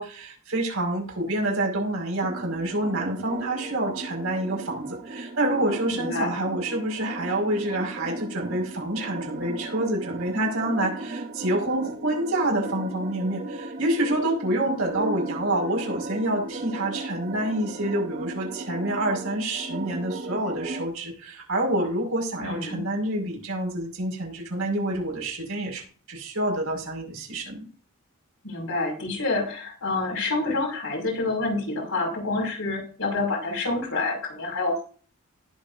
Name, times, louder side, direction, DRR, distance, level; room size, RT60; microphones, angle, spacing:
voice 1, 0.0-27.7, right 1 dB, 70° right, 0 dB, 5.6 m, -27 dB
sound 1, 2.2-20.9, right 2 dB, 45° right, 1.0 m, -36 dB
voice 2, 5.9-6.3 22.4-22.8 28.4-34.8, left 3 dB, 75° left, -1 dB, 5.8 m, -28 dB
19.0 x 7.4 x 2.7 m, 0.42 s
head